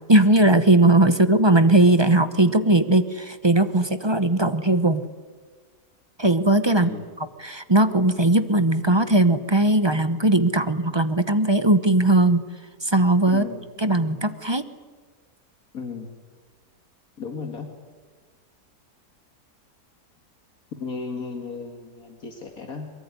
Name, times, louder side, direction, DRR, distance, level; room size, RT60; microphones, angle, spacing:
voice 1, 0.1-5.0 6.2-6.9 7.4-12.4 12.8-13.4 13.8-14.6, right 2 dB, 20° right, 11 dB, 0.9 m, -19 dB
voice 2, 13.3-13.6 15.7-16.1 17.2-17.7 20.8-22.9, left 5 dB, 65° left, 4 dB, 2.4 m, -34 dB
23.0 x 22.0 x 9.8 m, 1.4 s
omnidirectional pair, 1.6 m